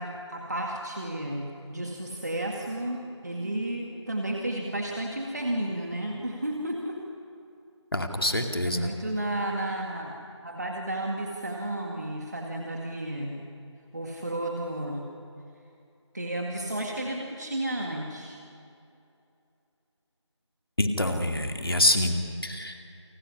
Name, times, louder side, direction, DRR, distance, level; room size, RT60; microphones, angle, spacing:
voice 1, 0.0-7.0 8.6-10.2 10.4-13.4 13.9-15.1 16.1-18.4, right 1 dB, 35° right, 0 dB, 2.0 m, -32 dB
voice 2, 7.9-8.9 20.8-22.2 22.4-22.8, left 1 dB, 50° left, 4 dB, 2.3 m, -26 dB
28.5 x 16.0 x 9.9 m, 2.6 s
figure-of-eight pair, 175°, 15 cm